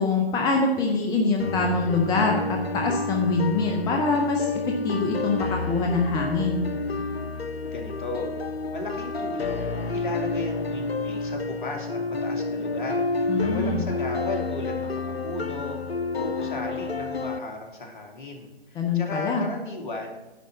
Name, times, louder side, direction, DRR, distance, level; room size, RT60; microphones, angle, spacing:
voice 1, 0.0-4.5 4.8-6.6 13.3-13.8 18.8-19.4, left 3 dB, 15° left, 1 dB, 0.8 m, -24 dB
sound 1, 1.4-17.4, left 3 dB, 85° left, 0.8 m, -30 dB
voice 2, 7.7-8.3 8.7-20.1, left 2 dB, 55° left, 2 dB, 2.4 m, -35 dB
10.5 x 4.5 x 7.0 m, 1.1 s
figure-of-eight pair, 125°, 30 cm